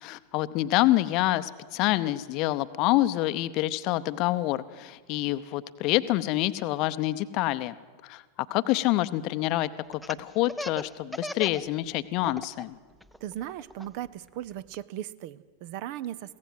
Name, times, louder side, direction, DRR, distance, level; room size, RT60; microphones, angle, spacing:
voice 1, 0.0-7.7 8.0-8.2 8.5-12.7, left 16 dB, 40° left, 14 dB, 0.7 m, -27 dB
Laughter, 9.9-11.7 12.0-12.6 13.0-14.8, equal, ahead, 0.6 m, -37 dB
voice 2, 13.2-16.4, right 12 dB, 45° right, 18 dB, 0.6 m, -37 dB
22.5 x 16.5 x 7.8 m, 1.5 s
figure-of-eight pair, 90°, 0 cm